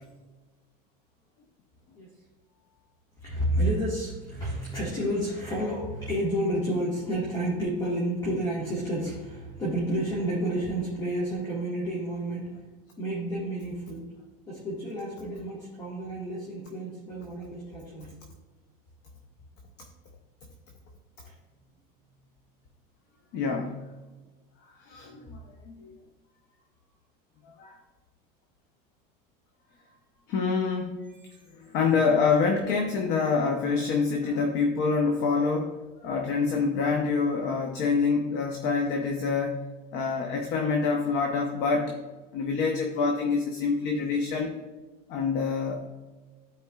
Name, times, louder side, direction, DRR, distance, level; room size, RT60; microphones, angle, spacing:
voice 1, 3.2-12.7 13.0-14.1 14.4-18.2 21.2-21.4, right 1 dB, 20° left, -6 dB, 1.5 m, -30 dB
voice 2, 23.3-23.9 24.8-25.9 27.6-27.8 30.3-31.3 31.6-39.6 39.9-42.0 42.3-44.6 45.1-45.9, left 4 dB, 45° left, 3 dB, 0.8 m, -26 dB
13.0 x 4.5 x 2.3 m, 1.2 s
cardioid pair, 175°, 20 cm